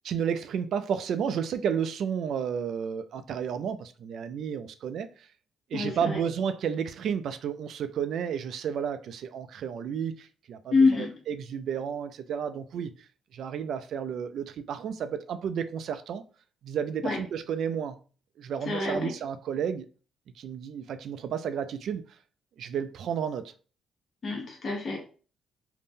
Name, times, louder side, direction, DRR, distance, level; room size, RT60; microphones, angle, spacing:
voice 1, 0.0-5.3 5.7-12.9 13.3-16.2 16.6-18.0 18.4-19.9 20.4-22.0 22.6-23.5, right 7 dB, 70° right, 0.3 m, -32 dB
voice 2, 5.7-6.2 10.7-11.1 17.0-17.2 18.6-19.1 24.2-25.0, left 4 dB, 45° left, 0.9 m, -26 dB
2.6 x 2.0 x 3.5 m
cardioid pair, 90°, 0 cm